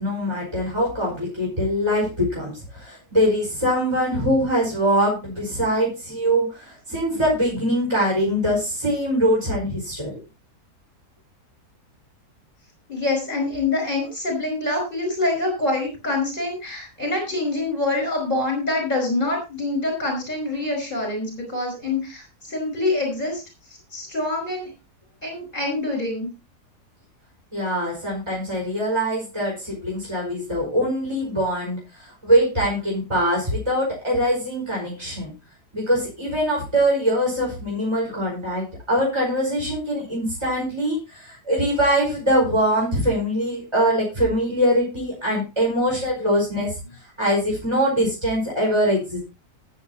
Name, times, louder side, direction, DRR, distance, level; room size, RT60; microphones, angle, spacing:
voice 1, 0.0-10.1 27.5-35.3 35.7-46.8 47.2-49.2, equal, 15° right, -3 dB, 5.1 m, -23 dB
voice 2, 12.9-23.4 23.7-24.7 25.2-26.3, left 2 dB, 30° left, 2 dB, 5.4 m, -25 dB
19.5 x 7.2 x 2.8 m, 0.28 s
omnidirectional pair, 1.7 m